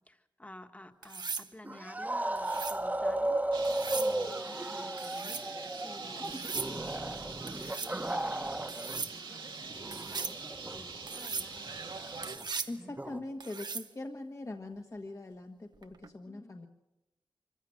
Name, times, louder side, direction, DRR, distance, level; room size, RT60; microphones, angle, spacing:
voice 1, 0.0-5.4 5.8-11.8 16.2-16.7, left 1 dB, 15° left, 6 dB, 1.7 m, -53 dB
sound 1, 1.0-1.5 2.4-2.8 3.6-4.1 5.0-5.5 6.2-6.7 7.5-7.9 8.7-9.1 9.9-10.4 11.1-11.5 12.2-12.8 13.4-13.9 15.8-16.1, right 4 dB, 65° right, 1.0 m, -38 dB
sound 2, 1.6-9.1 9.3-13.2, right 1 dB, 20° right, 1.3 m, -35 dB
Bird, 3.5-12.4, right 4 dB, 80° right, 1.9 m, -44 dB
voice 2, 12.7-16.7, left 2 dB, 40° left, 3 dB, 1.6 m, -42 dB
25.0 x 15.5 x 7.8 m, 0.96 s
cardioid pair, 60°, 8 cm